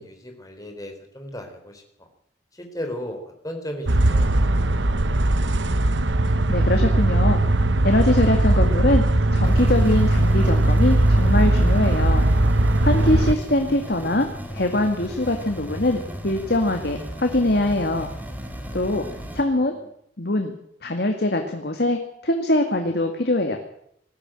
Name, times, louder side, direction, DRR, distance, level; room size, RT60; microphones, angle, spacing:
voice 1, 0.0-2.1 2.5-5.3 18.7-19.1 19.5-19.9 22.9-23.0, equal, 20° left, 4 dB, 4.0 m, -37 dB
sound 1, 3.9-13.3, right 1 dB, 80° right, 1.1 m, -19 dB
voice 2, 6.5-7.4 7.8-9.1 9.3-12.3 12.8-18.1 18.7-19.1 19.3-19.8 20.2-20.6 20.8-23.6, left 1 dB, 55° left, 4 dB, 2.1 m, -22 dB
sound 2, 9.4-19.4, equal, 10° right, 3.3 m, -35 dB
19.5 x 15.0 x 9.0 m, 0.72 s
head